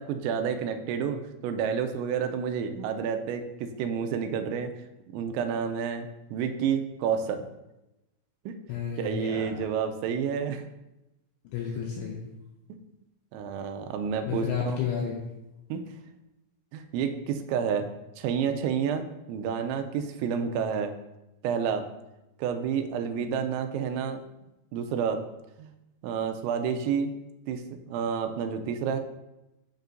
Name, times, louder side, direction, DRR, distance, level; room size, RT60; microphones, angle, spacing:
voice 1, 0.0-4.7 5.1-7.4 8.5-8.6 9.0-10.6 13.3-14.8 15.7-15.8 16.7-17.9 18.2-20.9 21.4-21.9 22.4-24.2 24.7-25.2 25.6-25.7 26.0-27.1 27.5-29.0, right 7 dB, 85° right, 6 dB, 2.8 m, -29 dB
voice 2, 8.7-9.6 11.5-12.2 14.3-15.2, left 7 dB, 90° left, -2 dB, 2.4 m, -31 dB
6.8 x 5.4 x 2.5 m, 0.96 s
omnidirectional pair, 5.3 m